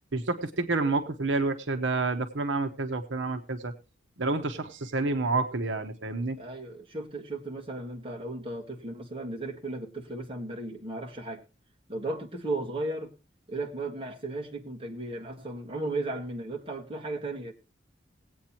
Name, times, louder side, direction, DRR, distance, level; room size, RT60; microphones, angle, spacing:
voice 1, 0.1-3.7 4.2-6.4, right 3 dB, 75° right, 0.9 m, -29 dB
voice 2, 6.4-11.4 11.9-13.1 13.5-17.5, right 2 dB, 30° right, 1.6 m, -35 dB
19.5 x 8.6 x 2.9 m
head